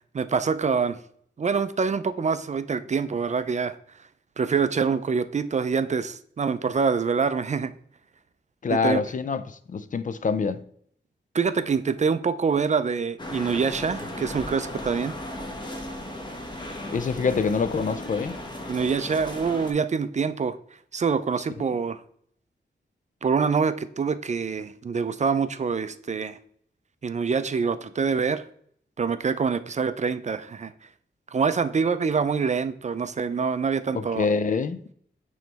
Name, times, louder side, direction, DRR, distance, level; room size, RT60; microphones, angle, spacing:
voice 1, 0.1-1.0 1.4-3.8 4.4-7.7 8.7-9.0 11.3-15.2 18.7-20.6 20.9-22.0 23.2-26.4 27.0-28.5 29.0-30.7 31.3-34.3, right 5 dB, 40° right, 0.4 m, -25 dB
voice 2, 8.6-10.6 16.9-18.4 33.9-34.9, left 5 dB, 45° left, 0.4 m, -26 dB
sound 1, 13.2-19.7, left 1 dB, 25° left, 1.0 m, -36 dB
8.9 x 3.1 x 3.4 m
wide cardioid pair, 95°, 19 cm